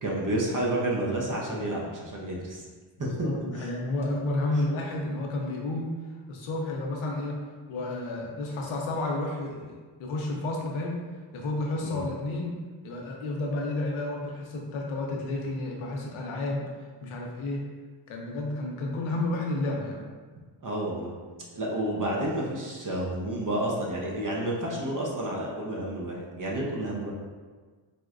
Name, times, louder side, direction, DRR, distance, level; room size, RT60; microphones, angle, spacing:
voice 1, 0.0-2.7 3.0-3.7 11.8-12.1 20.6-21.1 21.5-27.1, right 1 dB, 40° right, -3 dB, 0.8 m, -30 dB
voice 2, 3.0-5.9 6.3-7.4 7.7-11.0 11.3-12.5 12.8-16.6 17.0-17.6 18.1-20.0, left 2 dB, 90° left, -1 dB, 0.7 m, -31 dB
4.0 x 2.1 x 2.4 m, 1.4 s
cardioid pair, 60°, 48 cm